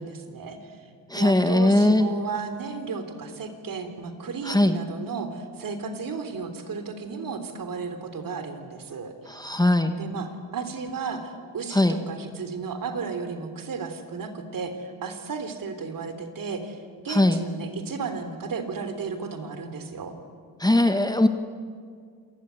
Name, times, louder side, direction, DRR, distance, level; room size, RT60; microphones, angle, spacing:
voice 1, 0.0-9.4 9.9-16.8 17.0-20.2, right 5 dB, 55° right, 8 dB, 3.4 m, -34 dB
voice 2, 1.1-2.1 4.5-4.8 9.3-9.9 11.7-12.0 17.1-17.4 20.6-21.3, left 1 dB, 10° left, 8 dB, 1.4 m, -20 dB
27.5 x 20.0 x 9.5 m, 2.1 s
cardioid pair, 95°, 40 cm